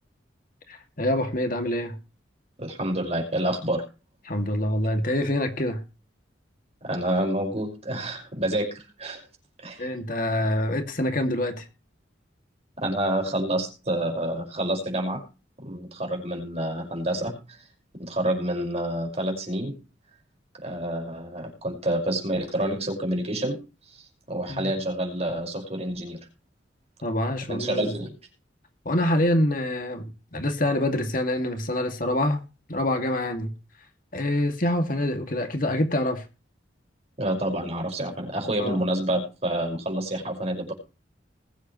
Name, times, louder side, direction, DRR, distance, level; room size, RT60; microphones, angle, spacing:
voice 1, 0.7-2.0 4.3-5.8 9.8-11.7 24.5-24.7 27.0-27.9 28.9-32.4 32.7-33.5 34.1-36.2 38.6-38.8, left 1 dB, 50° left, 2.3 m, -26 dB
voice 2, 2.6-3.8 6.8-9.3 9.6-9.9 12.8-15.2 15.6-17.7 17.9-19.7 20.6-23.6 23.9-26.3 27.5-28.2 37.2-40.7, right 1 dB, 35° right, 5.3 m, -28 dB
20.5 x 8.2 x 3.1 m
head